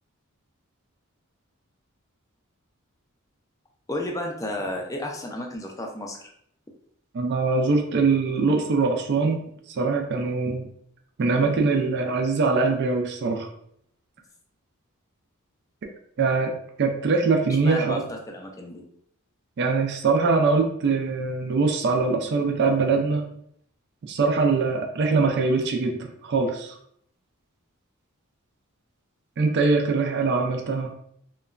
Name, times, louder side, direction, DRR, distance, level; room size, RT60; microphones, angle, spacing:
voice 1, 3.9-6.2 17.6-18.0 18.3-18.8, left 1 dB, 15° left, 1 dB, 0.4 m, -32 dB
voice 2, 7.1-9.4 9.7-10.7 11.2-13.5 16.2-18.0 19.6-23.3 24.1-26.7 29.4-30.9, right 4 dB, 55° right, 3 dB, 0.4 m, -23 dB
2.9 x 2.2 x 2.4 m, 0.68 s
head